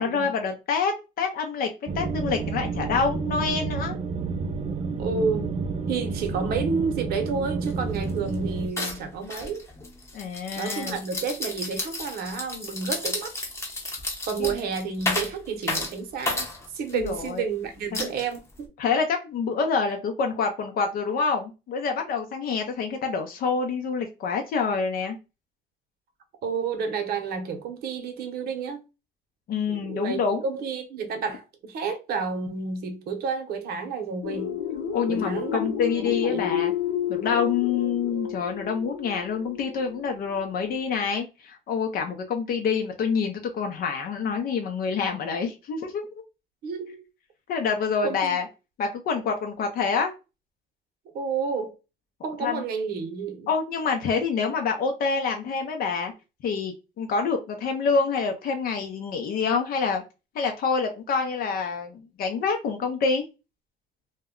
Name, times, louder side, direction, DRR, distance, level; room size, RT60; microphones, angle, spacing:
voice 1, 0.0-1.7 1.9-4.0 10.1-11.0 14.4-14.5 16.9-17.4 17.9-18.1 18.8-25.2 29.5-30.4 34.9-36.7 37.1-46.2 47.5-48.5 48.8-50.1 52.4-52.6 53.5-56.1 56.4-60.0 60.3-63.2, left 5 dB, 60° left, 0.6 m, -27 dB
sound 1, 1.9-8.7, right 4 dB, 35° right, 0.5 m, -30 dB
voice 2, 5.0-5.5 5.9-9.7 10.6-13.3 14.3-16.5 16.7-18.7 26.4-28.8 29.7-34.6 35.1-35.6 35.9-36.5 46.6-47.0 48.0-48.4 51.1-51.7 52.2-53.5, right 5 dB, 65° right, 0.7 m, -30 dB
sound 2, 7.6-7.7 8.0-8.3 8.8-17.3 17.9-18.6, left 2 dB, 15° left, 0.8 m, -32 dB
sound 3, 34.2-40.8, left 10 dB, 80° left, 0.9 m, -31 dB
2.2 x 2.1 x 3.6 m
cardioid pair, 110°, 17 cm